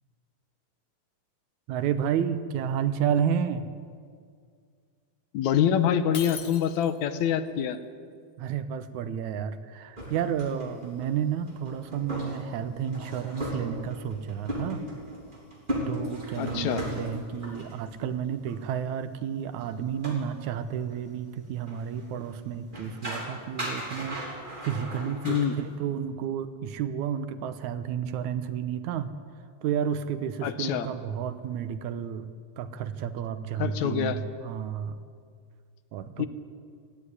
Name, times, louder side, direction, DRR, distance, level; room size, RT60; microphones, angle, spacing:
voice 1, 1.7-3.6 8.4-14.8 15.9-29.2 29.6-32.3 32.6-35.0 35.9-36.3, right 8 dB, 85° right, 11 dB, 2.3 m, -31 dB
voice 2, 5.3-7.8 16.4-16.8 25.2-25.6 30.4-30.9 33.6-34.2 36.2-36.3, left 9 dB, 80° left, 11 dB, 2.2 m, -25 dB
Shatter, 6.1-7.2, left 7 dB, 55° left, 1.7 m, -39 dB
sound 1, 10.0-18.1 18.5-18.6 19.6-19.7 20.0-20.2 20.9-21.0 21.7-22.3 22.7-25.5, equal, 15° right, 3.0 m, -36 dB
18.0 x 14.5 x 9.7 m, 2.1 s
omnidirectional pair, 3.3 m